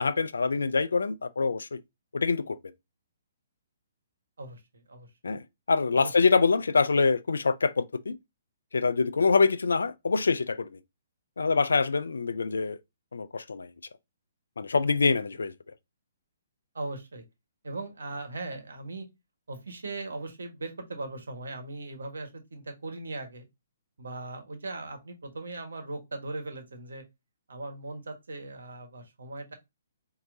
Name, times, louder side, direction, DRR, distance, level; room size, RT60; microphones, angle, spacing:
voice 1, 0.0-1.8 2.1-2.6 5.2-8.1 8.7-10.8 11.4-12.8 13.1-13.7 14.6-15.5, left 4 dB, 80° left, 0.4 m, -25 dB
voice 2, 4.4-5.3 5.9-6.1 16.7-17.2 17.6-19.1 19.5-23.4 24.0-27.0 27.5-29.5, right 2 dB, 80° right, 1.3 m, -39 dB
4.5 x 2.9 x 2.6 m
hypercardioid pair, 135°, 0 cm